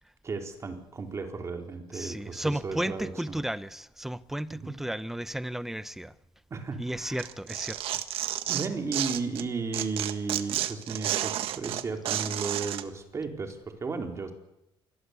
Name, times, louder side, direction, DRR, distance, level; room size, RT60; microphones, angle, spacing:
voice 1, 0.2-3.4 4.5-4.8 6.5-7.3 8.5-14.3, right 4 dB, 30° right, 4.5 m, -34 dB
voice 2, 1.9-6.1 6.8-7.8, right 1 dB, 5° right, 0.9 m, -33 dB
Tearing, 7.2-9.4 9.7-12.8, right 12 dB, 75° right, 1.7 m, -31 dB
27.5 x 22.0 x 8.5 m
cardioid pair, 135°, 10 cm